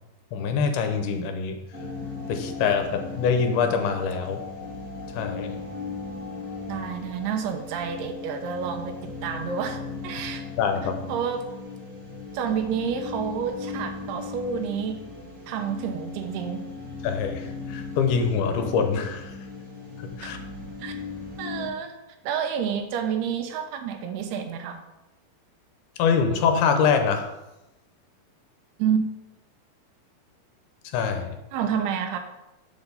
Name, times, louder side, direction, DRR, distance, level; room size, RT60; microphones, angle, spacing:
voice 1, 0.3-1.6 2.3-4.4 5.1-5.6 10.6-11.1 17.0-19.3 20.0-20.4 26.0-27.3 30.9-31.4, left 6 dB, 85° left, 6 dB, 2.6 m, -24 dB
sound 1, 1.7-21.7, left 3 dB, 75° right, 0.8 m, -37 dB
voice 2, 6.7-8.9 9.2-9.8 10.0-10.4 11.1-11.4 12.3-15.0 15.5-16.6 20.2-20.3 20.8-21.0 21.4-22.0 22.2-24.8 28.8-29.1 31.5-32.2, right 7 dB, 90° right, 6 dB, 2.8 m, -29 dB
7.1 x 7.0 x 3.9 m, 0.98 s
omnidirectional pair, 4.6 m